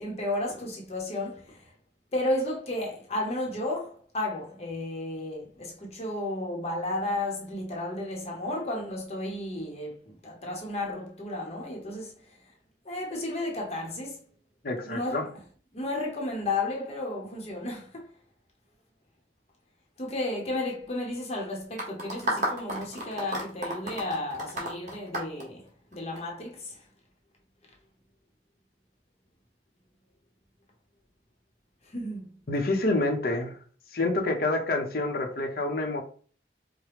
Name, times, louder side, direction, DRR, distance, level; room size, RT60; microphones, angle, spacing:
voice 1, 0.0-1.7 2.1-12.4 12.8-14.2 14.8-15.3 15.7-18.1 20.0-26.8 31.8-32.4, left 2 dB, 35° left, 0.9 m, -33 dB
voice 2, 14.6-15.3 32.5-33.5 33.9-36.0, left 2 dB, 60° left, 0.8 m, -27 dB
sound 1, 21.8-26.2, right 1 dB, 45° right, 1.3 m, -32 dB
5.0 x 2.2 x 3.0 m
head